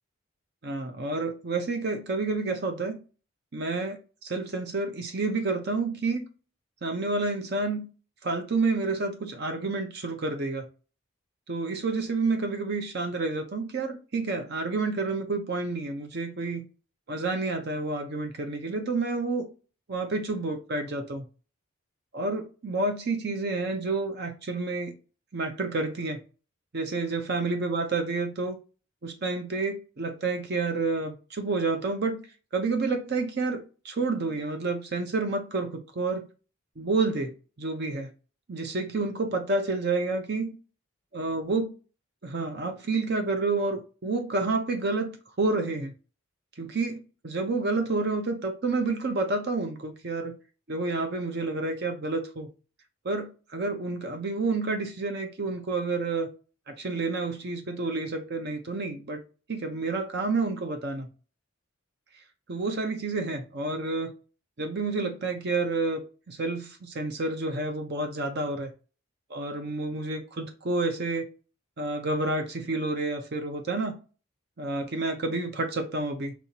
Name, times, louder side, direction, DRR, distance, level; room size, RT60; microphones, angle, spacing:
voice 1, 0.6-3.0 3.5-6.2 6.8-7.9 8.2-10.7 11.5-16.7 17.1-19.5 19.9-21.3 22.1-25.0 25.3-26.2 26.7-28.6 29.0-32.2 32.5-36.2 36.8-38.1 38.5-40.5 41.1-41.7 42.2-45.9 46.6-50.4 50.7-52.5 53.0-56.3 56.7-59.2 59.5-61.1 62.5-64.1 64.6-66.0 66.3-68.7 69.3-71.3 71.8-74.0 74.6-76.3, right 3 dB, 50° right, 0.6 m, -29 dB
6.2 x 2.9 x 2.8 m
head